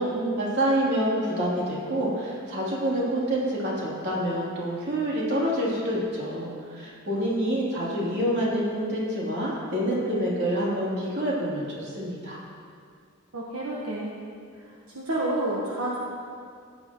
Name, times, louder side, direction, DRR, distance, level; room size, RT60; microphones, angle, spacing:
voice 1, 0.0-12.4, equal, 55° right, -6 dB, 3.2 m, -27 dB
voice 2, 13.3-14.1 14.9-16.0, right 1 dB, 80° right, -4 dB, 1.3 m, -29 dB
15.5 x 10.5 x 3.1 m, 2.2 s
head